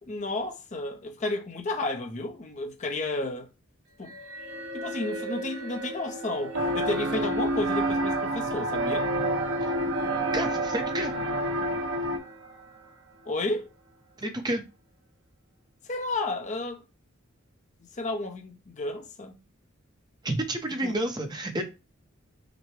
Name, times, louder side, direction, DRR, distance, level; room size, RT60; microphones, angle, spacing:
voice 1, 0.0-3.5 4.0-4.2 4.7-9.1 13.3-13.7 15.9-16.8 17.9-19.4 20.8-21.0, left 2 dB, 35° left, 0.7 m, -32 dB
sound 1, 4.0-13.5, right 3 dB, 90° right, 1.1 m, -38 dB
sound 2, 6.5-12.2, right 1 dB, 70° right, 0.8 m, -28 dB
voice 2, 10.3-11.1 14.2-14.6 20.2-21.6, right 1 dB, 20° right, 0.7 m, -30 dB
5.9 x 2.2 x 3.2 m
head